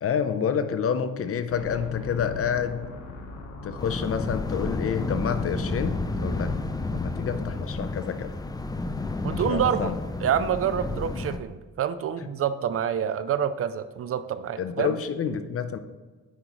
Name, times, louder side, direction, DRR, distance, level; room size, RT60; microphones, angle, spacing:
voice 1, 0.0-2.9 3.6-6.5 6.9-8.3 9.3-10.0 14.6-15.8, left 7 dB, 50° left, 9 dB, 0.7 m, -28 dB
sound 1, 1.5-9.5, left 3 dB, 85° left, 1.3 m, -39 dB
sound 2, 3.8-11.4, left 2 dB, 15° left, 0.5 m, -31 dB
voice 2, 9.2-9.9 10.2-14.9, right 9 dB, 50° right, 13 dB, 0.5 m, -27 dB
9.8 x 5.2 x 3.1 m, 1.4 s
cardioid pair, 90°, 30 cm